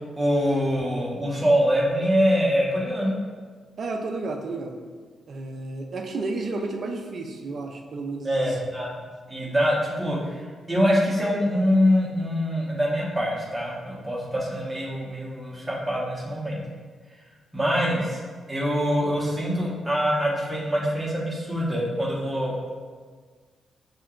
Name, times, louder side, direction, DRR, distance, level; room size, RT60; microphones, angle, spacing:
voice 1, 0.1-3.1 8.2-8.9 9.3-10.4 10.7-16.6 17.5-18.2 18.5-22.7, equal, 10° right, -5 dB, 1.0 m, -24 dB
voice 2, 3.8-4.8 5.3-8.6 9.4-9.5, right 3 dB, 50° right, 3 dB, 0.4 m, -32 dB
6.1 x 2.8 x 2.4 m, 1.5 s
cardioid pair, 125°, 0 cm